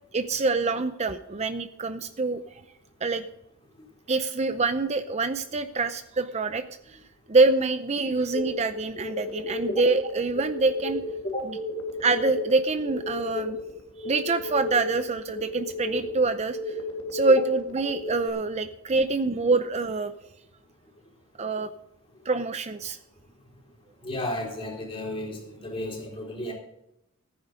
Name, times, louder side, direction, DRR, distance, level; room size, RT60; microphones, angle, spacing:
voice 1, 0.1-2.4 3.0-3.2 4.1-6.6 7.3-11.0 11.4-11.6 12.0-13.6 14.0-16.6 17.1-20.1 21.4-21.7 22.3-23.0, right 3 dB, 30° right, 10 dB, 0.6 m, -25 dB
sound 1, 8.3-18.3, left 2 dB, 90° left, 3.5 m, -34 dB
voice 2, 24.0-26.5, left 1 dB, 25° left, -1 dB, 4.0 m, -33 dB
15.0 x 9.6 x 5.2 m, 0.83 s
head